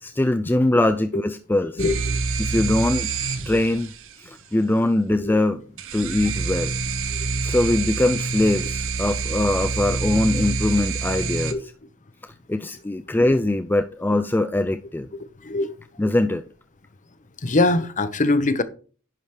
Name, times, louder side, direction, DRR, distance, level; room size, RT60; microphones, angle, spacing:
voice 1, 0.0-1.8 2.4-3.1 3.5-3.9 4.2-5.6 5.9-6.8 7.4-11.7 12.5-15.1 16.0-16.4, left 1 dB, 10° left, 0.3 m, -22 dB
voice 2, 1.8-2.2 5.2-5.4 11.5-11.6 15.4-15.7 17.4-18.6, left 2 dB, 35° left, 0.8 m, -22 dB
sound 1, 1.8-4.1 5.8-11.5, right 4 dB, 65° right, 1.0 m, -27 dB
11.0 x 4.9 x 4.5 m
head